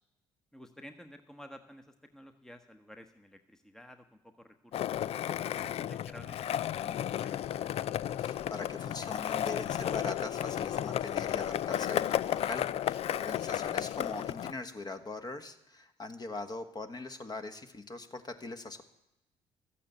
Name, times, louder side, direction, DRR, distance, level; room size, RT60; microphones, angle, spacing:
voice 1, 0.5-4.9 5.5-8.0, equal, 5° left, 7 dB, 1.1 m, -53 dB
Skateboard, 4.7-14.5, left 11 dB, 55° left, 0.4 m, -33 dB
voice 2, 8.2-18.8, left 3 dB, 35° left, 6 dB, 1.6 m, -41 dB
13.0 x 8.5 x 8.1 m, 0.87 s
supercardioid pair, 60°, 12 cm